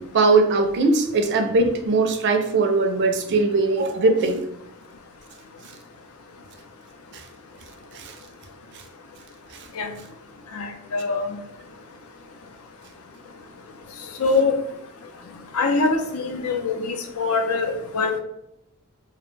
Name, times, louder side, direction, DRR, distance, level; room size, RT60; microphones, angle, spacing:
voice 1, 0.1-4.4 7.1-7.2 7.9-8.1 9.5-9.7, right 3 dB, 50° right, 5 dB, 0.4 m, -20 dB
voice 2, 10.5-11.4 14.2-14.6 15.5-18.2, left 3 dB, 70° left, 4 dB, 0.4 m, -23 dB
2.3 x 2.1 x 3.1 m, 0.80 s
head